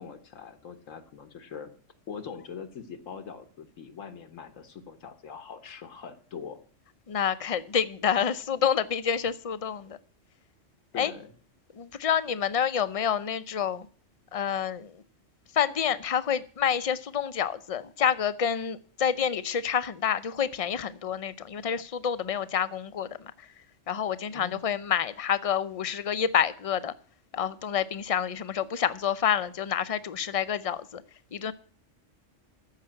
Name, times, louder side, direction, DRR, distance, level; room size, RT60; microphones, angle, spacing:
voice 1, 0.0-1.7 2.1-6.6 10.9-11.3 24.3-24.6, left 6 dB, 85° left, 1.5 m, -42 dB
voice 2, 7.1-10.0 11.0-11.1 11.8-13.9 14.3-15.0 15.5-23.3 23.9-26.9 27.3-31.0 31.3-31.5, left 8 dB, 40° left, 0.5 m, -28 dB
14.5 x 5.7 x 8.8 m
omnidirectional pair, 1.3 m